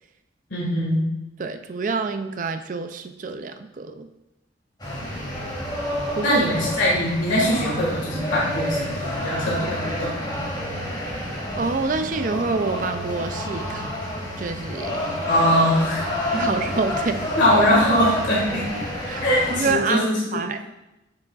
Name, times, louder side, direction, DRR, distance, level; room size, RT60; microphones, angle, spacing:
voice 1, 0.5-1.1 6.2-10.4 15.3-16.1 16.3-16.5 17.3-18.8 19.2-20.4, equal, 85° left, -5 dB, 1.7 m, -22 dB
voice 2, 1.4-4.1 6.2-6.4 11.6-14.0 14.4-15.0 16.3-17.2 19.1-20.6, right 4 dB, 45° right, 8 dB, 0.4 m, -27 dB
sound 1, 4.8-19.7, equal, 25° left, 2.0 m, -29 dB
7.7 x 6.2 x 2.4 m, 0.96 s
head